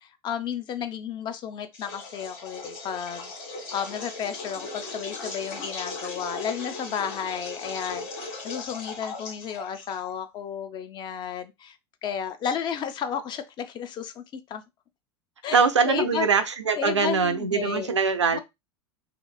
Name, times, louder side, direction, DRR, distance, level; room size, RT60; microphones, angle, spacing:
voice 1, 0.0-3.3 3.7-11.8 12.0-14.2 14.5-14.6 15.4-16.3 16.8-17.9 18.3-18.4, left 8 dB, 30° left, 0.4 m, -32 dB
sound 1, 1.7-10.3, left 3 dB, 55° left, 1.0 m, -38 dB
voice 2, 15.5-18.4, right 5 dB, 85° right, 0.4 m, -22 dB
2.8 x 2.5 x 2.3 m
figure-of-eight pair, 85°, 15 cm